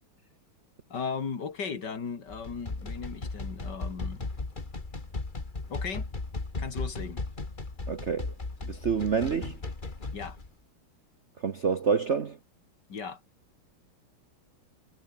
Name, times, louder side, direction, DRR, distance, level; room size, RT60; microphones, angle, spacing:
voice 1, 0.9-4.2 5.7-6.1 6.6-7.2 10.1-10.4 12.9-13.2, left 5 dB, 55° left, 3.1 m, -36 dB
sound 1, 2.3-10.5, left 3 dB, 25° left, 2.3 m, -36 dB
voice 2, 7.9-8.3 8.6-9.6 11.4-12.4, right 6 dB, 45° right, 1.0 m, -27 dB
omnidirectional pair, 2.3 m